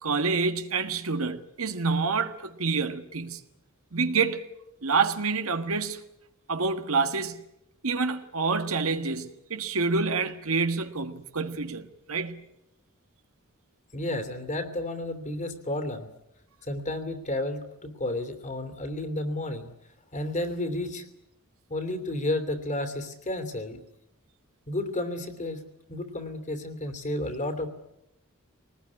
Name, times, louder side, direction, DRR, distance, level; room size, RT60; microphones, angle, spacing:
voice 1, 0.0-3.4 3.9-4.4 4.8-6.0 6.5-7.4 7.8-12.4, right 4 dB, 75° right, 1.6 m, -27 dB
voice 2, 13.9-16.1 16.6-19.7 20.1-21.0 21.7-23.8 24.7-25.6 25.9-27.7, left 1 dB, 35° left, 2.9 m, -32 dB
23.0 x 19.5 x 9.8 m
head